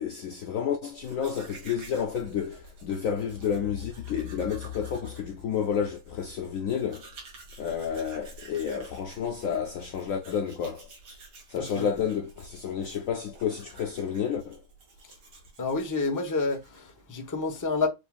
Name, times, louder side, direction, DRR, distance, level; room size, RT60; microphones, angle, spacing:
voice 1, 0.0-7.1 7.6-10.9 11.5-14.6, left 7 dB, 90° left, 0.7 m, -30 dB
Domestic sounds home sounds, 0.9-17.0, right 3 dB, 90° right, 2.6 m, -51 dB
voice 2, 11.5-11.9 15.6-17.9, left 3 dB, 20° left, 0.4 m, -29 dB
6.5 x 2.5 x 2.4 m
omnidirectional pair, 2.1 m